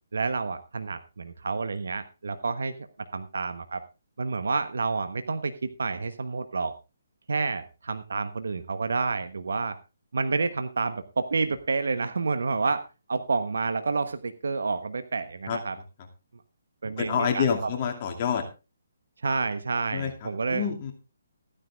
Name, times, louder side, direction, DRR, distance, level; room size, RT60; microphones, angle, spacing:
voice 1, 0.1-2.8 3.1-3.8 4.2-6.7 7.3-9.8 10.1-15.8 16.8-17.7 19.2-20.7, right 4 dB, 75° right, 9 dB, 1.2 m, -29 dB
voice 2, 17.0-18.4 19.9-20.9, left 7 dB, 35° left, 4 dB, 2.5 m, -28 dB
15.0 x 10.0 x 3.5 m, 0.29 s
hypercardioid pair, 160°, 0 cm